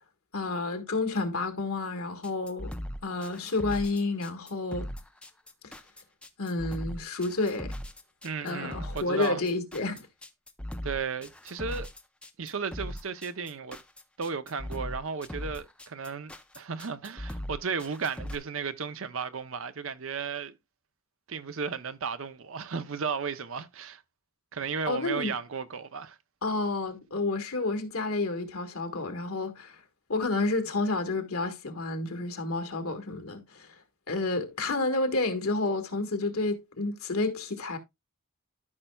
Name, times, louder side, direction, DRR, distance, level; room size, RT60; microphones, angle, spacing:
voice 1, 0.3-2.7 3.0-4.9 6.4-7.7 8.4-10.0 24.9-25.3 26.4-29.8 30.1-33.8 34.1-37.8, left 3 dB, 85° left, 1.6 m, -30 dB
sound 1, 2.2-18.4, equal, 5° left, 0.6 m, -39 dB
voice 2, 8.2-9.4 10.8-11.9 12.4-13.8 14.2-20.5 21.3-24.0 24.5-26.2, right 5 dB, 70° right, 0.7 m, -34 dB
13.0 x 5.6 x 2.3 m
head